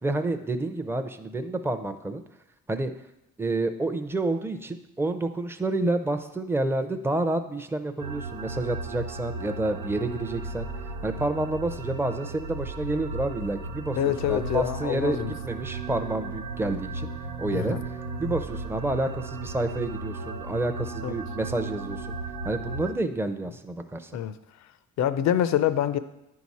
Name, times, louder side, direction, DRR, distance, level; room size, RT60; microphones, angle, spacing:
voice 1, 0.0-2.2 2.7-2.9 3.4-10.7 11.0-17.1 17.4-17.8 18.2-22.2 22.4-24.1, right 2 dB, 10° right, 8 dB, 0.5 m, -29 dB
sound 1, 8.0-22.9, right 3 dB, 85° right, 0.7 m, -35 dB
voice 2, 14.0-15.3 17.5-17.8 21.0-21.1 24.1-24.3 25.0-26.0, left 10 dB, 65° left, 13 dB, 0.5 m, -25 dB
10.0 x 4.8 x 4.2 m, 0.92 s
cardioid pair, 90°, 30 cm